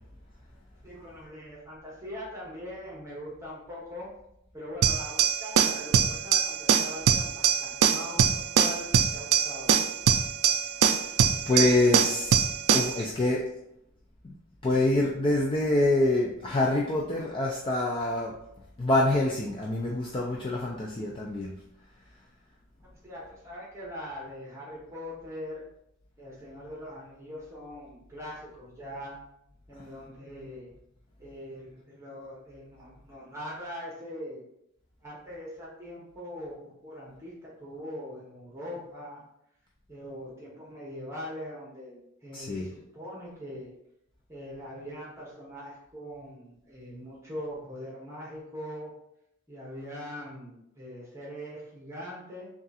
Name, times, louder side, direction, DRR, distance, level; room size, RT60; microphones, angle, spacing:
voice 1, 0.8-4.1 4.5-9.8 22.8-25.6 26.2-29.2 29.7-30.7 31.2-34.4 35.0-39.2 39.9-43.7 44.3-48.9 49.5-52.5, equal, 15° right, -5 dB, 0.9 m, -41 dB
sound 1, 4.8-13.0, right 7 dB, 90° right, 0.3 m, -23 dB
voice 2, 11.5-12.4 12.7-13.4 14.2-14.3 14.6-18.4 18.8-21.5 42.3-42.7, left 2 dB, 25° left, -2 dB, 0.4 m, -26 dB
3.5 x 2.4 x 4.1 m, 0.78 s
head